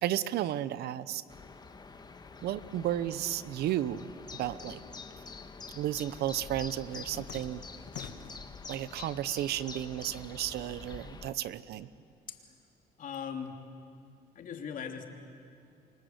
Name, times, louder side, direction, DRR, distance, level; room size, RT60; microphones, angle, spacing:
voice 1, 0.0-1.2 2.4-4.1 4.4-4.8 5.7-7.6 8.7-11.9, right 12 dB, 70° right, 16 dB, 0.9 m, -33 dB
sound 1, 1.3-11.3, left 4 dB, 25° left, 1.6 m, -46 dB
sound 2, 6.5-8.5 9.0-9.6 9.9-11.6, left 10 dB, 85° left, 1.7 m, -50 dB
voice 2, 13.0-13.6 14.3-15.1, left 7 dB, 50° left, 4 dB, 3.1 m, -39 dB
29.5 x 25.0 x 8.0 m, 2.5 s
cardioid pair, 110°, 17 cm